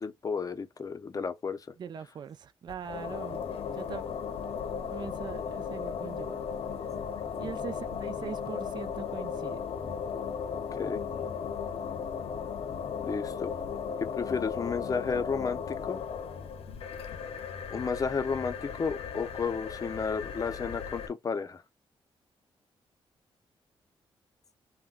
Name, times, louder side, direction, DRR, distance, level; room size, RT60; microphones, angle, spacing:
voice 1, 0.0-1.7 6.8-7.3 10.5-11.0 13.0-13.5 14.0-16.0 17.7-21.6, left 5 dB, 35° left, 0.5 m, -33 dB
voice 2, 1.8-3.4 3.7-4.0 4.9-6.4 7.4-9.6, right 7 dB, 45° right, 0.3 m, -41 dB
sound 1, 2.7-21.1, left 6 dB, 70° left, 0.7 m, -36 dB
3.6 x 2.1 x 2.4 m
cardioid pair, 110°, 10 cm